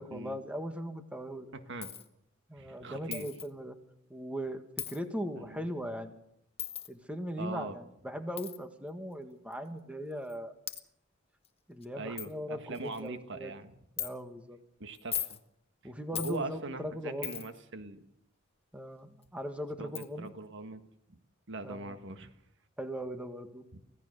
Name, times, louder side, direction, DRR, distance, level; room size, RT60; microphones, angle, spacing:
voice 1, 0.0-1.5 2.5-3.8 4.1-6.2 6.9-10.5 11.7-13.5 14.0-14.6 15.8-17.4 18.7-20.3 21.6-22.0 22.8-23.6, equal, 5° right, 7 dB, 1.7 m, -39 dB
voice 2, 1.5-1.9 2.6-3.3 5.4-5.6 7.4-7.8 12.0-13.7 14.8-15.4 15.8-18.0 19.8-20.8 21.1-21.2 21.5-22.3 23.7-23.8, right 3 dB, 60° right, 9 dB, 1.5 m, -41 dB
Coin (dropping), 1.8-2.1 3.1-3.5 4.8-5.0 6.6-6.9 8.4-8.6 9.5-9.6 10.3-10.4 10.7-10.8 11.4-11.5 11.8-11.9 12.2-12.3 12.7-13.1 14.0-14.1 14.9-15.4 16.1-16.4 17.2-17.6 19.2-19.3 19.9-20.1, left 10 dB, 30° left, 1.4 m, -37 dB
25.5 x 16.5 x 6.7 m, 0.75 s
head